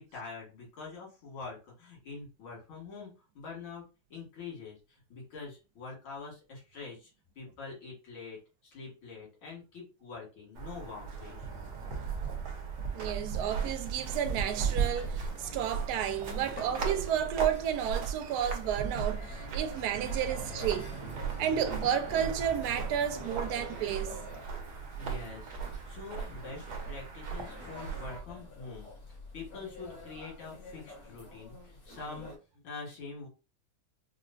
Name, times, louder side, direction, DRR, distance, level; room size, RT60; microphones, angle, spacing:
voice 1, 0.0-3.8 4.1-7.1 7.4-11.5 19.7-19.8 25.0-25.5 25.9-32.3 32.6-33.3, left 4 dB, 85° left, 2.7 m, -45 dB
sound 1, 10.5-28.2, right 6 dB, 60° right, 1.3 m, -37 dB
voice 2, 12.9-20.9 21.4-24.2, right 9 dB, 80° right, 0.9 m, -32 dB
sound 2, 13.4-32.4, left 2 dB, 40° left, 1.6 m, -48 dB
5.1 x 2.1 x 2.6 m
omnidirectional pair, 2.2 m